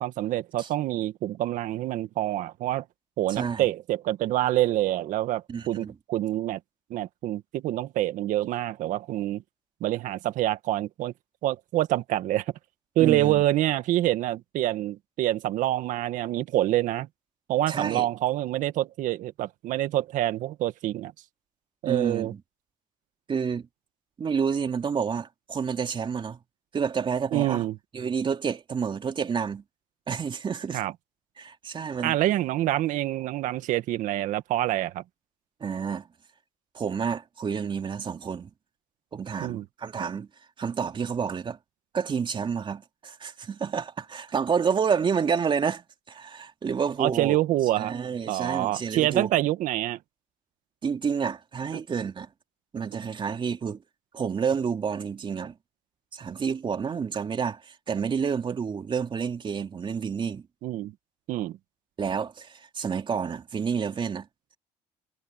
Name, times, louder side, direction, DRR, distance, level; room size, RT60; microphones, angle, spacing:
voice 1, 0.0-2.8 3.2-6.6 6.9-9.4 9.8-11.1 11.4-12.5 13.0-17.1 17.5-21.1 21.8-22.3 27.3-27.8 30.7-30.9 32.0-35.0 39.4-39.6 47.0-48.0 48.3-50.0 60.6-60.9 61.3-61.6, right 14 dB, 70° right, 1.8 m, -26 dB
voice 2, 3.3-3.7 5.5-6.0 13.0-13.4 17.7-18.1 21.9-22.4 23.3-23.7 24.2-26.4 26.7-27.6 27.9-29.6 30.1-30.8 31.4-32.2 35.6-36.1 36.7-38.5 39.1-40.3 40.6-41.6 41.9-47.4 47.8-49.3 50.8-52.3 52.7-53.8 54.1-55.5 56.1-60.5 62.0-64.3, right 6 dB, 35° right, 2.8 m, -29 dB
cardioid pair, 90°, 14 cm